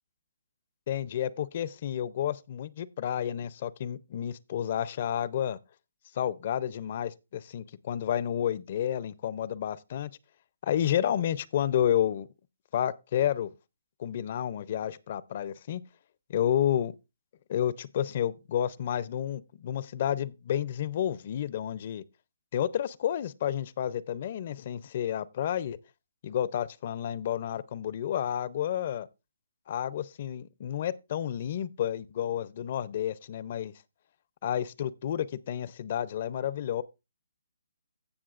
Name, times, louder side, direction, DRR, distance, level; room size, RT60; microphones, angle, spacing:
voice 1, 0.9-5.6 6.2-10.1 10.6-12.3 12.7-13.5 14.0-15.8 16.3-16.9 17.5-22.0 22.5-25.8 26.2-29.1 29.7-33.7 34.4-36.8, left 10 dB, 40° left, 0.5 m, -30 dB
16.5 x 6.1 x 2.4 m
hypercardioid pair, 160°, 0 cm